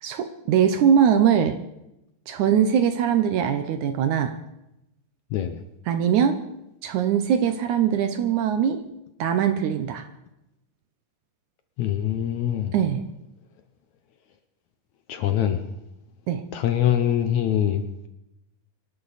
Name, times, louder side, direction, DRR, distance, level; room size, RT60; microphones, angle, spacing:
voice 1, 0.0-1.6 2.3-4.3 5.9-6.4 6.8-8.8 9.2-10.0 12.7-13.0 16.3-16.4, right 8 dB, 70° right, 9 dB, 2.0 m, -21 dB
voice 2, 11.8-12.7 15.1-15.6 16.5-18.1, left 10 dB, 70° left, 8 dB, 1.9 m, -24 dB
25.5 x 11.5 x 4.1 m, 0.88 s
omnidirectional pair, 4.1 m